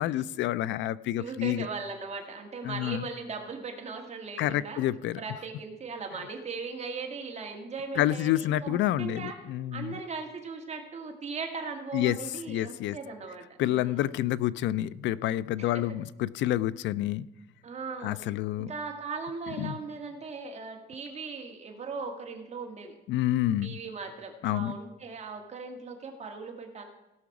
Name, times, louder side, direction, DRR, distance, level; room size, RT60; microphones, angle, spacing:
voice 1, 0.0-1.7 2.6-3.0 4.4-5.2 8.0-9.9 11.9-12.2 12.5-13.0 13.6-17.3 18.0-18.7 19.6-19.8 23.1-23.8 24.4-24.8, left 13 dB, 90° left, 18 dB, 0.4 m, -28 dB
voice 2, 1.2-4.8 5.2-9.4 9.7-14.2 15.6-15.8 17.6-18.2 18.6-22.9 23.6-26.8, right 4 dB, 35° right, 3 dB, 1.8 m, -38 dB
17.0 x 5.9 x 4.8 m, 0.98 s
cardioid pair, 140°, 18 cm